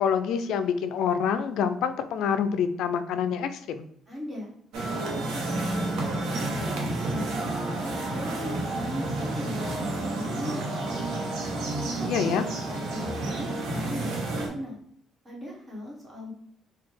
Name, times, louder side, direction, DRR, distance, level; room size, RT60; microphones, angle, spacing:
voice 1, 0.0-3.9 12.0-12.5, left 7 dB, 75° left, 10 dB, 0.3 m, -26 dB
voice 2, 4.1-4.5 5.3-6.7 7.1-7.6 8.0-11.1 11.7-14.8 15.2-16.3, left 1 dB, 25° right, -4 dB, 1.4 m, -38 dB
sound 1, 4.7-14.5, right 2 dB, 80° right, 0.8 m, -30 dB
4.0 x 2.3 x 3.3 m, 0.68 s
cardioid pair, 95°, 0 cm